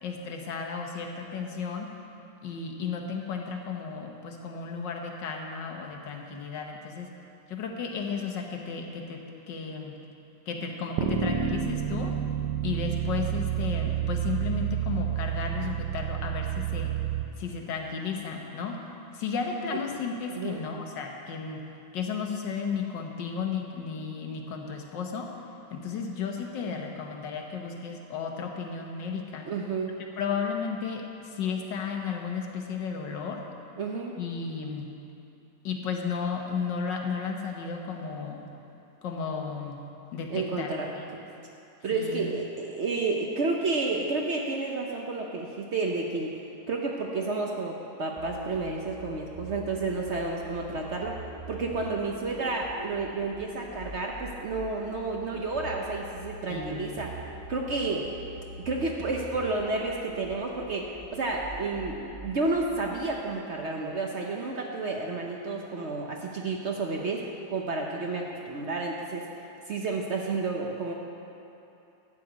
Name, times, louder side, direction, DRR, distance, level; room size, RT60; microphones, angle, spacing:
voice 1, 0.0-2.0 2.4-7.1 7.5-10.0 10.5-12.2 12.6-16.9 17.4-18.9 19.1-21.6 21.9-25.3 25.7-29.5 30.2-33.5 34.2-34.9 35.6-38.4 39.0-39.8 40.1-40.7 41.0-41.3 41.9-42.3 56.5-57.0, left 5 dB, 90° left, 2 dB, 1.7 m, -34 dB
sound 1, 11.0-17.2, right 10 dB, 85° right, 1.3 m, -29 dB
voice 2, 20.3-20.7 29.4-29.9 33.8-34.1 40.3-40.9 41.8-46.4 46.7-51.2 51.5-57.1 57.5-58.1 58.6-69.3 69.7-70.9, right 3 dB, 55° right, 0 dB, 0.8 m, -31 dB
sound 2, 48.2-63.3, right 1 dB, 20° right, 1.1 m, -44 dB
12.0 x 5.0 x 8.2 m, 2.9 s
omnidirectional pair, 1.9 m